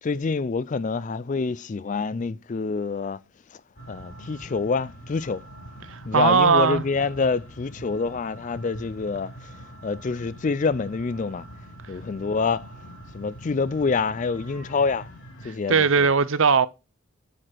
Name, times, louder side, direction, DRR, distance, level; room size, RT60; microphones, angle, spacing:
voice 1, 0.0-3.2 3.9-5.4 6.1-9.5 9.8-11.5 11.9-12.7 13.1-15.1 15.4-16.1, left 4 dB, 35° left, 0.4 m, -26 dB
sound 1, 3.8-15.5, right 1 dB, 60° left, 3.1 m, -44 dB
voice 2, 5.9-6.8 15.7-16.7, right 5 dB, 60° right, 0.6 m, -19 dB
9.8 x 4.9 x 4.5 m
head